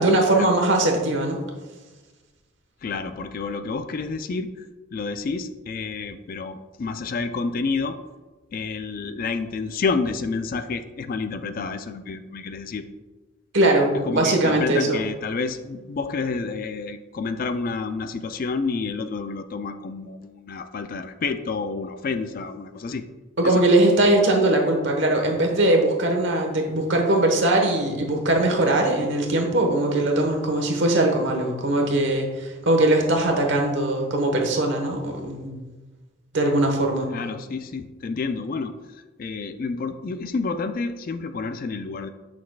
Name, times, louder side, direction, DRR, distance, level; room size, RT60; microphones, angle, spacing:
voice 1, 0.0-1.4 13.5-15.0 23.4-35.5 36.3-37.1, right 1 dB, 60° right, 2 dB, 1.2 m, -21 dB
voice 2, 2.8-4.6 4.9-8.0 8.5-12.8 13.9-23.1 23.4-23.7 37.1-42.1, left 4 dB, 45° left, 9 dB, 0.3 m, -29 dB
8.5 x 6.0 x 2.3 m, 1.2 s
head